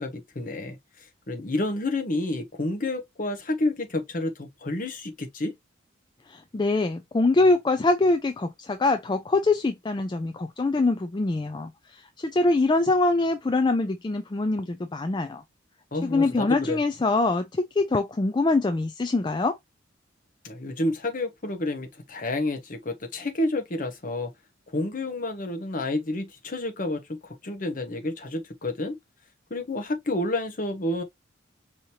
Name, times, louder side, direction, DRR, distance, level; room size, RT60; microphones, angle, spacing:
voice 1, 0.0-5.5 15.9-16.8 20.4-24.3 24.7-29.0 29.5-31.0, left 2 dB, 40° left, 0.9 m, -30 dB
voice 2, 6.3-15.4 16.0-19.5, left 2 dB, 20° left, 0.3 m, -24 dB
5.0 x 2.9 x 2.7 m
head